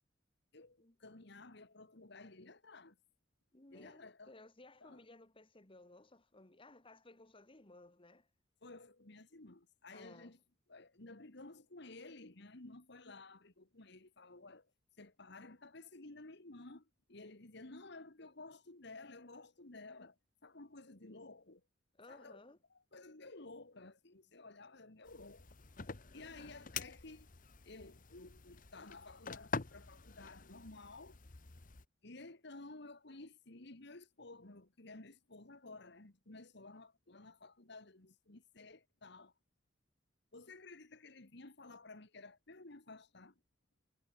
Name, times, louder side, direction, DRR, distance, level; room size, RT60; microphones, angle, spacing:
voice 1, 0.5-3.0 3.7-4.3 4.8-5.0 8.6-10.4 10.7-14.7 15.0-21.6 22.1-22.4 22.7-25.5 26.1-27.3 27.6-31.2 32.0-39.3 40.3-43.4, left 2 dB, 65° left, 2.1 m, -54 dB
voice 2, 3.5-8.3 9.9-10.3 22.0-22.6, left 2 dB, 30° left, 2.1 m, -59 dB
sound 1, 25.0-31.8, left 5 dB, 45° left, 1.2 m, -47 dB
head